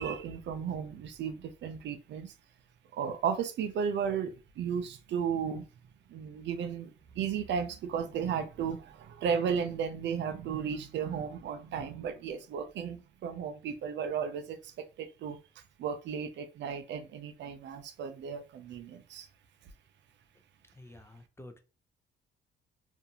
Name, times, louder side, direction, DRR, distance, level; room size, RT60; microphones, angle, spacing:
voice 1, 0.0-2.3 2.9-5.7 6.1-15.4 15.8-19.3, right 7 dB, 65° right, 0.4 m, -34 dB
voice 2, 20.8-21.6, left 1 dB, 15° left, 0.4 m, -50 dB
2.6 x 2.3 x 2.8 m
cardioid pair, 90°, 20 cm